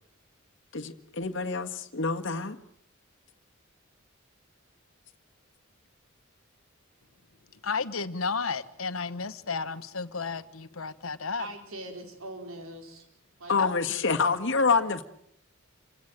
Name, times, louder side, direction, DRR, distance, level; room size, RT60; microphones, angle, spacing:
voice 1, 0.7-2.6 13.5-15.0, left 4 dB, 60° left, 1.8 m, -27 dB
voice 2, 7.6-11.5 13.6-13.8, left 4 dB, 85° left, 1.4 m, -32 dB
voice 3, 11.4-13.1 13.4-13.6, right 1 dB, 85° right, 5.1 m, -41 dB
28.5 x 17.0 x 9.1 m
head